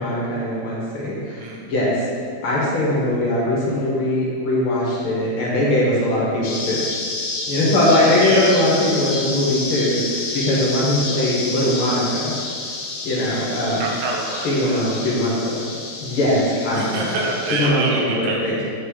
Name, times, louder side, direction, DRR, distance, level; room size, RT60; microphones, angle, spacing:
voice 1, 0.0-2.1 2.4-6.9 7.5-12.3 13.0-13.8 14.3-15.3 16.0-16.9 17.5-18.6, left 1 dB, 55° left, -6 dB, 1.7 m, -21 dB
voice 2, 1.4-1.7 8.2-8.5 13.8-14.5 16.7-18.6, right 3 dB, 85° right, -1 dB, 2.2 m, -26 dB
sound 1, 6.4-17.7, left 3 dB, 70° left, 2.2 m, -29 dB
7.4 x 3.6 x 3.9 m, 2.2 s
omnidirectional pair, 3.5 m